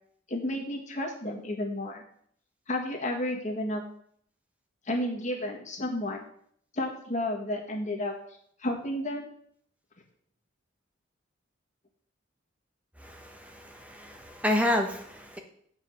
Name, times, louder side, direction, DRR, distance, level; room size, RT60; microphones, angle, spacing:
voice 1, 0.3-2.0 2.7-3.8 4.9-6.2 6.7-8.1 8.6-9.3, left 1 dB, 40° left, 1 dB, 1.8 m, -31 dB
voice 2, 13.0-15.4, left 1 dB, 5° right, 3 dB, 1.1 m, -30 dB
7.8 x 5.1 x 7.2 m, 0.64 s
head